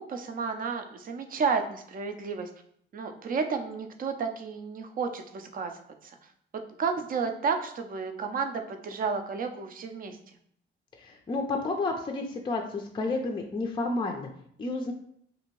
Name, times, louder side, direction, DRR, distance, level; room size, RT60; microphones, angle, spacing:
voice 1, 0.0-2.5 2.9-5.7 6.0-10.2, right 5 dB, 45° right, 6 dB, 0.5 m, -32 dB
voice 2, 11.0-14.3 14.6-14.9, left 3 dB, 25° left, 3 dB, 0.4 m, -31 dB
2.7 x 2.5 x 2.9 m, 0.67 s
cardioid pair, 90°, 20 cm